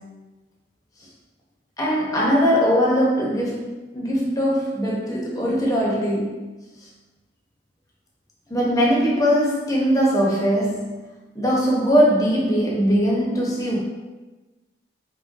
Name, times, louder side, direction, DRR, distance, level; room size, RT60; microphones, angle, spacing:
voice 1, 1.8-6.4 8.5-11.0 11.3-13.8, equal, 20° left, -4 dB, 0.8 m, -20 dB
4.1 x 3.8 x 2.6 m, 1.2 s
head